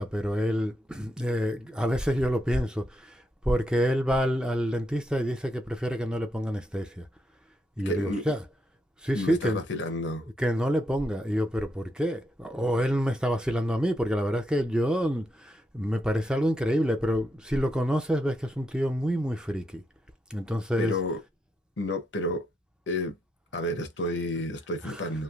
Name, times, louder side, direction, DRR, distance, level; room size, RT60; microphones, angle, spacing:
voice 1, 0.0-3.1 3.4-7.0 7.8-8.4 9.0-9.6 10.4-19.8 20.3-20.9 24.9-25.0, equal, 5° right, 0.4 m, -27 dB
voice 2, 7.8-8.3 9.1-10.3 20.8-21.2 21.8-22.5 22.9-23.1 23.5-25.2, left 1 dB, 70° left, 0.8 m, -30 dB
3.1 x 2.7 x 2.4 m
head